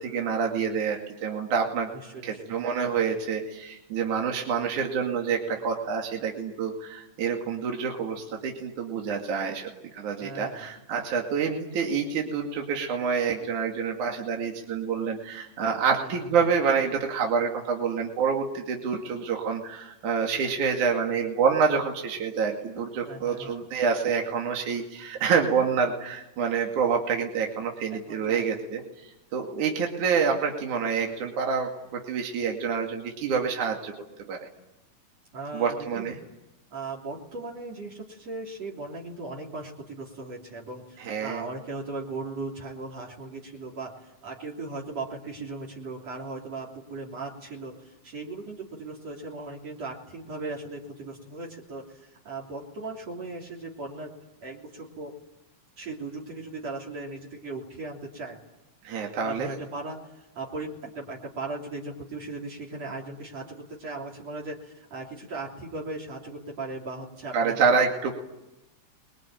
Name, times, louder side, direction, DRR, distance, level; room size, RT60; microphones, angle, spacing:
voice 1, 0.0-1.9 2.2-33.9 34.3-34.5 35.5-36.2 41.0-41.5 58.8-59.5 67.3-68.1, right 6 dB, 65° right, 1 dB, 3.8 m, -27 dB
voice 2, 2.0-2.6 10.2-10.7 16.0-16.5 23.0-23.7 27.9-28.6 35.3-36.1 36.7-54.1 54.4-55.2 55.8-58.4 59.2-67.6 68.0-68.1, right 3 dB, 50° right, 2 dB, 4.3 m, -38 dB
25.5 x 22.5 x 9.1 m, 0.91 s
omnidirectional pair, 3.8 m